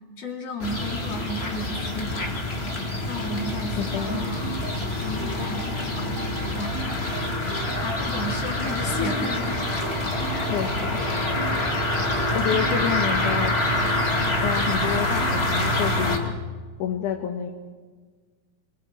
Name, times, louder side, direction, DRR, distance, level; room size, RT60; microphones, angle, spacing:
voice 1, 0.2-2.5 3.0-4.5 5.0-7.1 7.6-9.6 10.3-10.5, left 1 dB, 45° left, 1 dB, 3.5 m, -34 dB
sound 1, 0.6-16.2, left 1 dB, 25° left, 1.6 m, -26 dB
voice 2, 3.8-4.3 8.8-9.4 9.8-10.0 10.5-11.0 12.3-13.5 14.4-16.3 16.8-17.5, left 8 dB, 65° left, 3 dB, 2.5 m, -29 dB
sound 2, 4.1-16.4, right 9 dB, 90° right, 3.0 m, -39 dB
29.0 x 23.5 x 4.3 m, 1.5 s
omnidirectional pair, 4.2 m